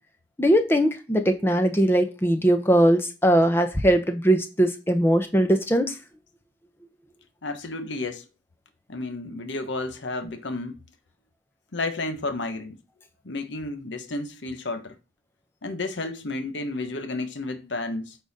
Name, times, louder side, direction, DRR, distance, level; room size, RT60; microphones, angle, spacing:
voice 1, 0.4-6.0, right 1 dB, 15° left, 0.8 m, -20 dB
voice 2, 7.4-8.2 8.9-10.8 11.7-12.8 13.2-14.9 15.6-18.2, left 2 dB, 80° left, 1.0 m, -32 dB
8.7 x 4.0 x 4.1 m
head